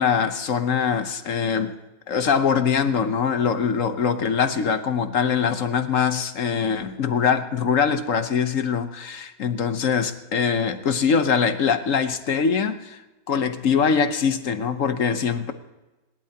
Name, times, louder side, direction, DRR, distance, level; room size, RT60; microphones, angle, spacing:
voice 1, 0.0-1.7 2.1-13.0 13.3-15.5, left 6 dB, 65° left, 9 dB, 1.2 m, -23 dB
27.5 x 12.0 x 2.8 m, 1.1 s
omnidirectional pair, 1.5 m